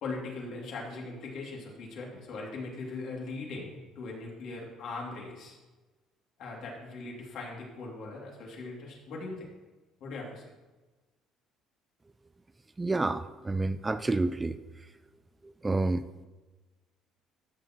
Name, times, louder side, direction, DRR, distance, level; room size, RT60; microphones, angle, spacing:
voice 1, 0.0-5.6 6.4-9.5 10.0-10.4, left 3 dB, 65° left, -2 dB, 2.7 m, -40 dB
voice 2, 12.8-14.6 15.4-16.3, right 2 dB, 15° right, 13 dB, 0.3 m, -29 dB
13.5 x 7.0 x 3.1 m, 1.2 s
cardioid pair, 100°, 0 cm